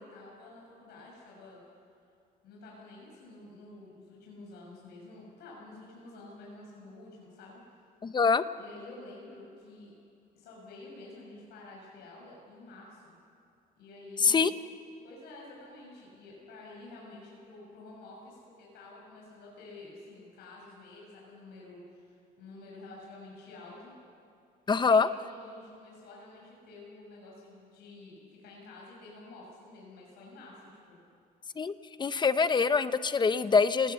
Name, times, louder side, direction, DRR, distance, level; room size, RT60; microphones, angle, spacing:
voice 1, 0.0-1.6 2.4-7.6 8.6-9.9 10.3-13.1 13.8-14.5 15.0-23.9 24.8-31.0, left 2 dB, 75° left, -3 dB, 6.4 m, -49 dB
voice 2, 8.0-8.4 14.2-14.5 24.7-25.1 31.6-33.9, left 5 dB, 25° left, 13 dB, 0.8 m, -24 dB
28.0 x 19.0 x 7.0 m, 2.5 s
cardioid pair, 110°, 17 cm